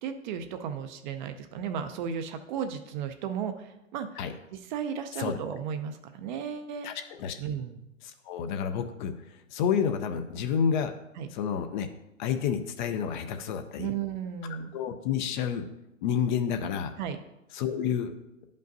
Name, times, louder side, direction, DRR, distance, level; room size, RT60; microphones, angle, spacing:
voice 1, 0.0-4.1 4.5-6.9 7.4-7.9 11.2-11.3 13.8-14.7 17.0-17.2, right 7 dB, 35° right, 8 dB, 0.5 m, -34 dB
voice 2, 8.0-9.1 9.5-10.9 11.3-11.9 12.2-13.9 14.7-15.6 16.0-16.9 17.5-18.1, left 7 dB, 35° left, 8 dB, 0.6 m, -29 dB
10.5 x 5.3 x 2.7 m, 0.91 s
hypercardioid pair, 120°, 40 cm